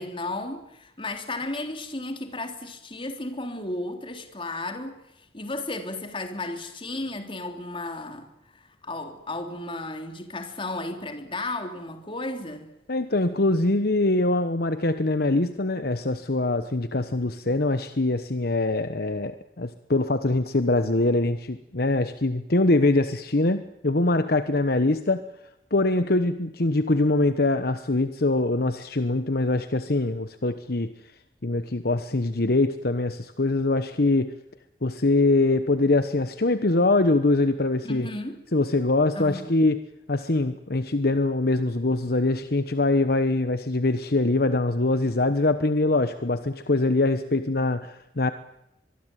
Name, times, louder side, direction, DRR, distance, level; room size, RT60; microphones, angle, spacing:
voice 1, 0.0-5.0 5.3-12.7 37.8-38.4 39.2-39.6, left 2 dB, 30° left, 3.6 m, -34 dB
voice 2, 12.9-25.2 25.7-30.9 31.4-34.3 34.8-38.1 38.5-39.8 40.1-48.3, left 2 dB, 60° left, 1.1 m, -23 dB
24.5 x 22.5 x 9.3 m
head